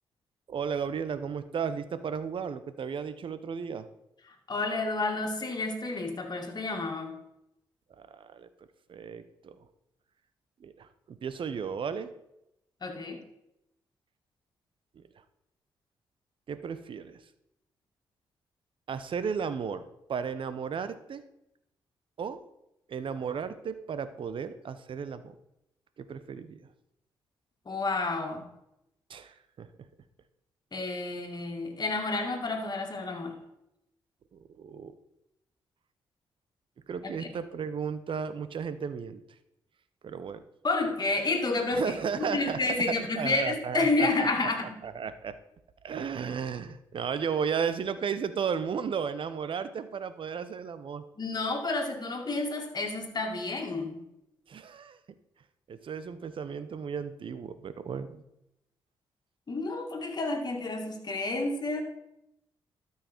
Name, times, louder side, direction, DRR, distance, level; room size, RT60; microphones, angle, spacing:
voice 1, 0.5-3.9 8.0-8.5 8.9-9.6 10.6-12.1 15.0-15.1 16.5-17.2 18.9-19.8 20.1-21.2 22.2-22.4 22.9-25.3 26.0-26.6 29.1-29.7 34.3-34.9 36.9-39.2 40.0-40.4 41.7-42.6 42.9-44.3 44.8-45.4 45.8-51.0 54.5-55.0 55.7-58.2, right 6 dB, 60° right, 13 dB, 0.8 m, -34 dB
voice 2, 4.5-7.1 12.8-13.2 27.7-28.5 30.7-33.4 37.2-37.3 40.6-44.6 51.2-54.0 59.5-61.8, left 3 dB, 45° left, 3 dB, 2.2 m, -30 dB
12.5 x 5.9 x 4.5 m, 0.85 s
supercardioid pair, 55°, 10 cm